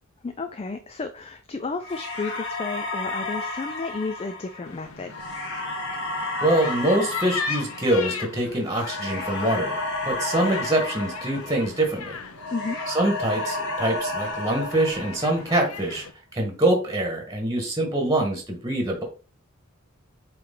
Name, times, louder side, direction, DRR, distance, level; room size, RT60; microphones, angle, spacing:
voice 1, 0.2-5.1 12.5-12.8, left 3 dB, 30° left, 8 dB, 0.4 m, -32 dB
sound 1, 1.8-12.0 12.3-15.8, left 2 dB, 55° left, 1.9 m, -32 dB
sound 2, 4.6-16.1, left 5 dB, 85° left, 0.8 m, -38 dB
voice 2, 6.4-9.8 10.0-12.2 12.9-16.0 16.3-19.0, right 1 dB, 15° right, 3 dB, 1.4 m, -24 dB
7.8 x 3.1 x 3.8 m, 0.36 s
head